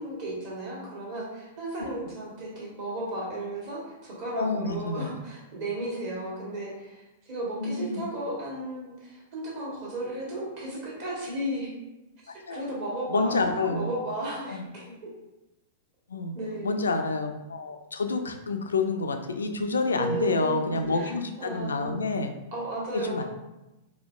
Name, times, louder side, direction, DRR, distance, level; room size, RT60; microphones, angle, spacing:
voice 1, 0.0-7.0 7.3-11.7 12.2-14.9 16.3-17.0 19.9-22.0 22.5-23.2, right 1 dB, 45° right, -4 dB, 1.4 m, -34 dB
voice 2, 4.3-5.1 7.6-8.1 12.5-12.6 13.1-13.9 14.5-14.7 16.1-16.3 16.6-22.3 23.0-23.2, left 3 dB, 70° left, 6 dB, 0.4 m, -28 dB
4.1 x 2.8 x 2.4 m, 0.99 s
figure-of-eight pair, 100°, 0 cm